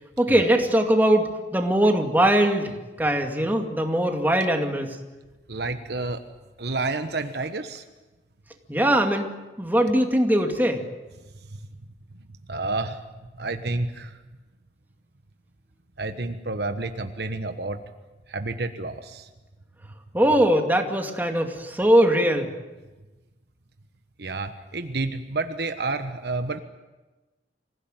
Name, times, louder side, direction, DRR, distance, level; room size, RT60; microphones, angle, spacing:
voice 1, 0.2-5.0 8.7-9.3 9.6-10.8 20.1-22.5, right 1 dB, 10° right, 3 dB, 2.4 m, -21 dB
voice 2, 5.5-6.2 6.6-7.8 11.5-11.6 12.5-13.0 13.3-14.2 16.0-17.8 18.3-19.3 24.2-26.6, right 3 dB, 65° right, 8 dB, 1.3 m, -30 dB
26.0 x 16.5 x 9.2 m, 1.1 s
head